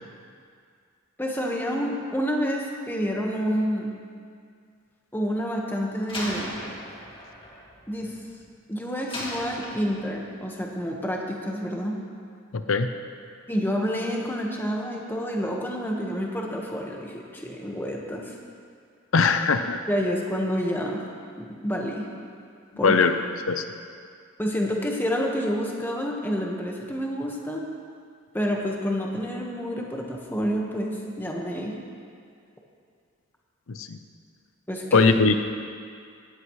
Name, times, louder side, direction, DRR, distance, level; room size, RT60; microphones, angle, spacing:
voice 1, 1.2-3.9 5.1-6.6 7.9-8.2 8.7-12.0 13.5-18.3 19.9-21.0 21.4-22.1 22.8-22.9 24.4-27.6 28.3-31.8 34.7-35.2, equal, 10° left, -1 dB, 1.4 m, -28 dB
Slam, 6.1-8.5 9.1-10.3, left 1 dB, 25° left, 2.4 m, -37 dB
voice 2, 12.5-12.9 19.1-19.8 22.8-23.1 23.5-23.6 33.7-34.0 34.9-35.3, left 4 dB, 85° left, 8 dB, 0.7 m, -20 dB
17.5 x 14.0 x 3.2 m, 2.2 s
head